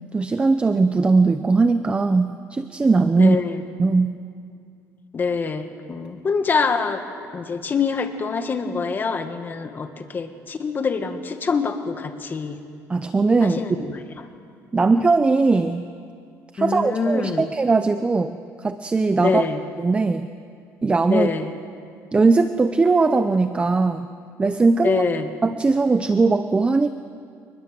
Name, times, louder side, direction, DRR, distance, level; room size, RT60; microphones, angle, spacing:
voice 1, 0.1-3.4 3.8-4.2 12.9-13.6 14.7-15.8 16.5-19.4 19.8-20.3 20.8-21.3 22.1-24.1 24.4-25.0 25.4-26.9, right 3 dB, 20° right, 10 dB, 0.7 m, -19 dB
voice 2, 3.2-3.6 5.1-7.0 7.3-12.6 13.4-14.0 16.6-17.4 19.2-19.6 21.1-21.5 24.8-25.3, left 5 dB, 30° left, 7 dB, 1.7 m, -25 dB
28.0 x 20.0 x 7.7 m, 2.3 s
cardioid pair, 130°, 6 cm